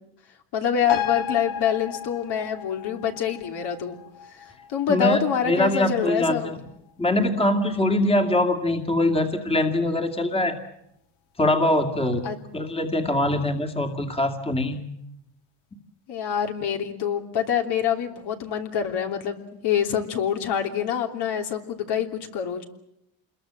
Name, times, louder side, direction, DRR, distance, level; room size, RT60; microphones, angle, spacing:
voice 1, 0.5-4.0 4.3-6.6 12.2-12.4 16.1-22.6, left 8 dB, 55° left, 4 dB, 3.1 m, -26 dB
sound 1, 0.9-7.8 8.2-8.3, left 8 dB, 80° left, 2.4 m, -35 dB
voice 2, 4.9-5.2 5.5-6.6 7.0-10.6 11.4-12.2 12.5-14.8, left 1 dB, 10° left, 5 dB, 2.3 m, -23 dB
27.5 x 21.5 x 7.6 m, 0.80 s
cardioid pair, 120°, 47 cm